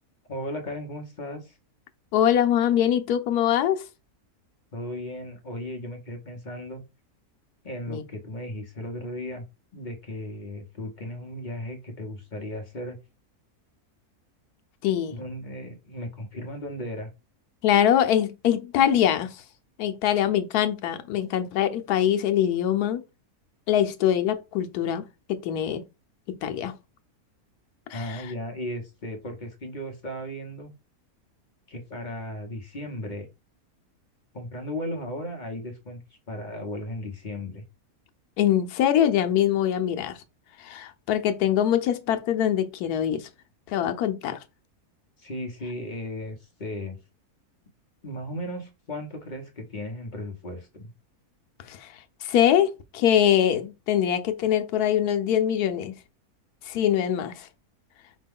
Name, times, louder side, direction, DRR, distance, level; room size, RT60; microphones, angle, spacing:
voice 1, 0.3-1.6 4.7-6.8 7.6-9.4 9.7-13.0 15.1-17.1 27.9-30.7 31.7-33.3 34.3-36.0 36.3-37.6 45.2-47.0 48.0-50.9, left 1 dB, 40° left, 0.8 m, -36 dB
voice 2, 2.1-3.8 7.9-8.0 14.8-15.1 17.6-19.4 19.8-23.0 23.7-25.8 26.3-26.7 27.9-28.3 38.4-40.2 40.6-43.3 43.7-44.4 51.7-51.9 52.2-55.9 56.7-57.5, left 10 dB, 80° left, 1.1 m, -23 dB
5.2 x 2.2 x 3.5 m
omnidirectional pair, 1.6 m